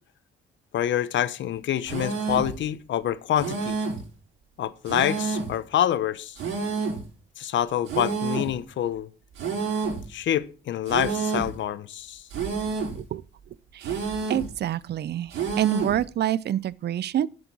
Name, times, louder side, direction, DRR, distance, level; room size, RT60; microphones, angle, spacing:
voice 1, 0.7-3.8 4.6-6.4 7.4-9.1 10.1-12.2, left 11 dB, 70° left, 1.0 m, -26 dB
sound 1, 1.9-2.6 3.4-4.1 4.9-5.6 6.4-7.1 7.9-8.6 9.4-10.1 10.9-11.6 12.3-13.0 13.8-14.5 15.3-16.0, right 4 dB, 80° right, 4.8 m, -29 dB
voice 2, 13.7-17.3, right 11 dB, 55° right, 0.6 m, -27 dB
11.0 x 7.9 x 6.3 m
cardioid pair, 90°, 20 cm